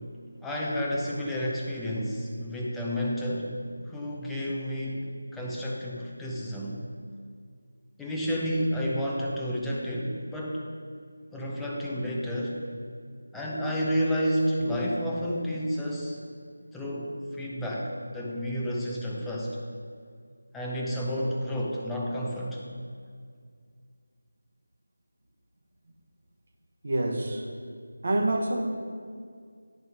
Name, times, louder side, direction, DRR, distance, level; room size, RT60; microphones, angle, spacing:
voice 1, 0.4-3.5 3.9-5.1 5.3-6.8 8.0-10.7 11.3-12.6 13.3-16.2 16.7-19.6 20.5-22.6, equal, 5° left, -5 dB, 0.7 m, -30 dB
voice 2, 26.8-27.5 28.0-28.6, right 1 dB, 45° right, 1 dB, 1.2 m, -27 dB
10.5 x 5.4 x 4.6 m, 2.1 s
figure-of-eight pair, 165°, 0 cm